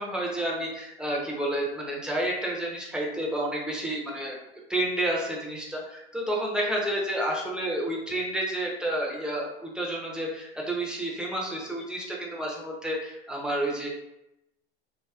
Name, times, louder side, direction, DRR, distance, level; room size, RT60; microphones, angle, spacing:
voice 1, 0.0-4.4 4.7-13.9, right 1 dB, ahead, -3 dB, 0.6 m, -30 dB
2.8 x 2.8 x 2.4 m, 0.89 s
hypercardioid pair, 100°, 34 cm